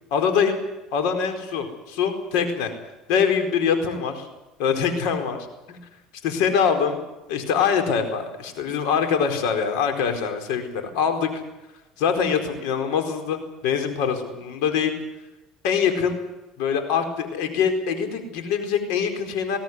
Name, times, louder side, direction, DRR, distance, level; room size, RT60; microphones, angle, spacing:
voice 1, 0.1-0.6 0.9-2.7 3.1-4.3 4.6-5.4 5.7-5.8 6.2-7.0 7.3-11.4 12.0-14.9 15.6-16.2 16.6-19.6, left 7 dB, 80° left, 6 dB, 4.5 m, -23 dB
22.0 x 17.0 x 9.5 m, 1.0 s
cardioid pair, 125°, 0 cm